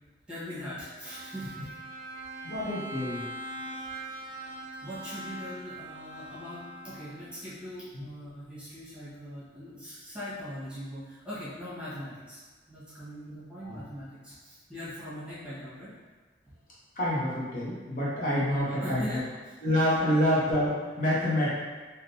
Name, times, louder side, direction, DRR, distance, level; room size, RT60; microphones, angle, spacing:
voice 1, 0.3-1.7 2.2-2.3 4.2-4.5 4.8-12.4 12.7-15.9 18.5-20.1, equal, 5° right, -12 dB, 1.1 m, -41 dB
Bowed string instrument, 1.0-7.4, right 1 dB, 45° right, 0.4 m, -42 dB
voice 2, 2.4-3.2 7.9-8.0 13.6-13.8 17.0-19.2 19.6-20.7 21.0-21.6, left 1 dB, 45° left, -8 dB, 0.7 m, -27 dB
3.5 x 2.8 x 2.6 m, 1.4 s
head